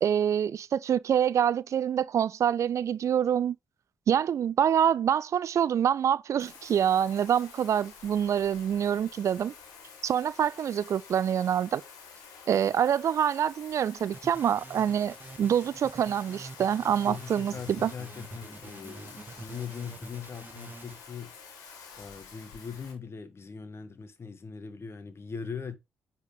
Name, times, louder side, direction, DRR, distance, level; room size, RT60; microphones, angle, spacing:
voice 1, 0.0-3.6 4.1-9.5 10.0-11.8 12.5-17.9, right 9 dB, 60° right, 0.4 m, -26 dB
Bathtub (filling or washing), 6.4-22.9, left 6 dB, 80° left, 2.2 m, -49 dB
sound 1, 14.1-21.0, right 3 dB, 30° right, 1.0 m, -47 dB
voice 2, 17.0-21.3 22.0-25.8, left 6 dB, 45° left, 1.4 m, -40 dB
9.7 x 4.3 x 3.7 m
hypercardioid pair, 45°, 6 cm